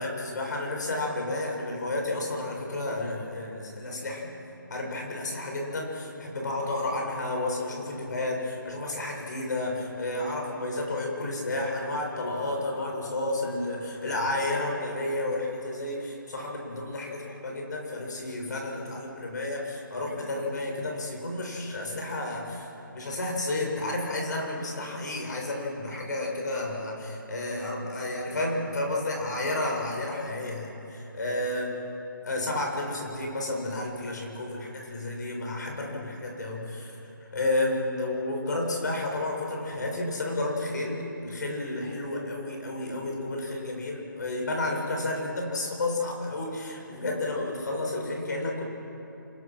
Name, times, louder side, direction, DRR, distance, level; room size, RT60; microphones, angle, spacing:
voice 1, 0.0-4.3 4.7-31.7 32.3-48.7, left 2 dB, 55° left, 0 dB, 6.9 m, -31 dB
27.5 x 20.5 x 6.2 m, 2.9 s
figure-of-eight pair, 160°, 11 cm